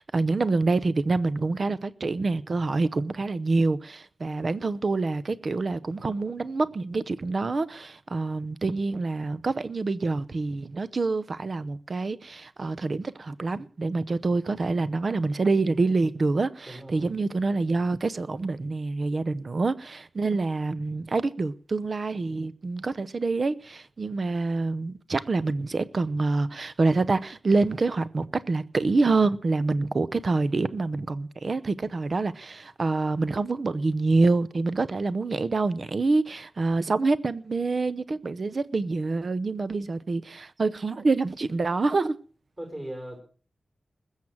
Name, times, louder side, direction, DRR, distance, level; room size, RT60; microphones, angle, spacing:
voice 1, 0.0-42.2, right 3 dB, 40° right, 0.7 m, -26 dB
voice 2, 16.7-17.1 42.6-43.2, right 1 dB, 20° right, 4.7 m, -38 dB
20.5 x 7.4 x 6.2 m
wide cardioid pair, 160°, 0 cm